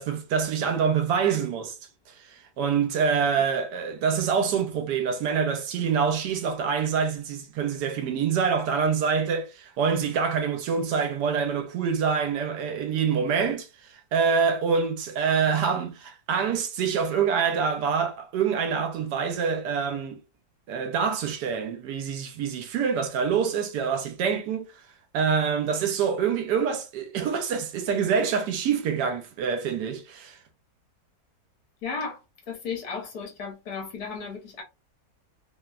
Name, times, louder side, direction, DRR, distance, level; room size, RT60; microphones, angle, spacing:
voice 1, 0.0-1.7 2.2-20.2 20.7-24.7 25.1-30.4, right 6 dB, 75° right, 1.1 m, -26 dB
voice 2, 31.8-32.2 32.5-34.6, left 5 dB, 65° left, 1.3 m, -34 dB
3.0 x 2.0 x 2.3 m
omnidirectional pair, 1.9 m